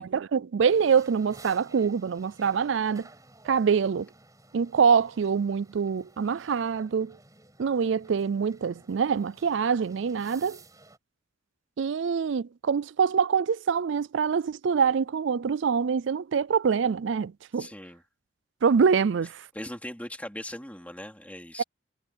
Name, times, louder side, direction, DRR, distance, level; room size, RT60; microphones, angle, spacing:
voice 1, 0.0-3.1 3.4-4.1 4.5-7.2 7.6-10.6 11.8-17.7 18.6-19.5 21.6-21.7, right 6 dB, 70° right, 0.4 m, -25 dB
sound 1, 0.7-11.0, right 2 dB, 15° right, 5.6 m, -54 dB
voice 2, 17.6-18.0 19.5-21.6, left 1 dB, 5° left, 3.9 m, -39 dB
head